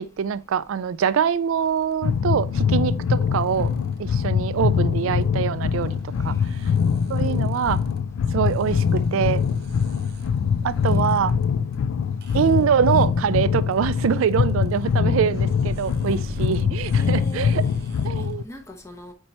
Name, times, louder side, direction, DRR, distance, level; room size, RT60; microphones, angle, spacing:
voice 1, 0.0-3.7 4.0-5.9 6.2-6.4 7.1-7.8 8.3-9.4 10.6-11.3 12.3-17.6 18.0-18.4, right 7 dB, 80° right, 0.3 m, -24 dB
sound 1, 1.6-18.3, right 2 dB, 45° right, 0.7 m, -45 dB
sound 2, 2.0-18.4, left 6 dB, 85° left, 0.3 m, -23 dB
voice 2, 6.2-6.8 10.9-11.0 17.0-17.5 18.2-19.1, equal, 15° left, 0.9 m, -41 dB
8.5 x 4.3 x 2.9 m
head